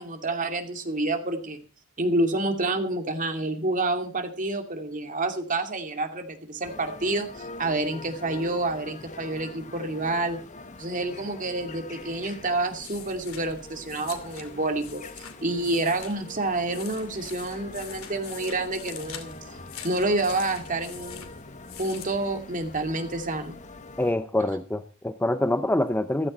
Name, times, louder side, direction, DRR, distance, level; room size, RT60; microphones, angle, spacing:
voice 1, 0.0-1.6 2.0-10.4 10.8-19.4 19.8-21.3 21.8-23.5, right 2 dB, 40° right, 5 dB, 2.5 m, -28 dB
sound 1, 6.6-24.1, left 3 dB, 35° left, 1.2 m, -44 dB
sound 2, 12.0-22.9, left 9 dB, 80° left, 2.6 m, -45 dB
voice 2, 24.0-26.3, left 1 dB, 10° left, 11 dB, 0.6 m, -25 dB
15.0 x 13.0 x 4.2 m, 0.36 s
head